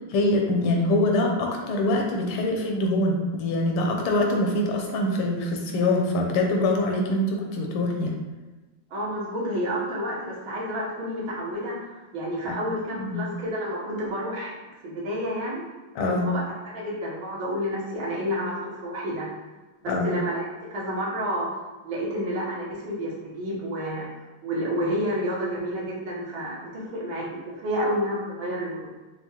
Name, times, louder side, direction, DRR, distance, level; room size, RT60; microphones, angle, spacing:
voice 1, 0.1-8.2 12.5-12.6 12.9-13.3 15.9-16.2 19.9-20.1, left 1 dB, 80° left, 1 dB, 1.5 m, -24 dB
voice 2, 8.9-14.5 14.8-15.6 16.0-19.3 19.8-20.5 20.7-21.5 21.8-24.1 24.4-28.9, equal, 65° right, -6 dB, 1.7 m, -30 dB
5.9 x 2.2 x 2.8 m, 1.2 s
omnidirectional pair, 2.4 m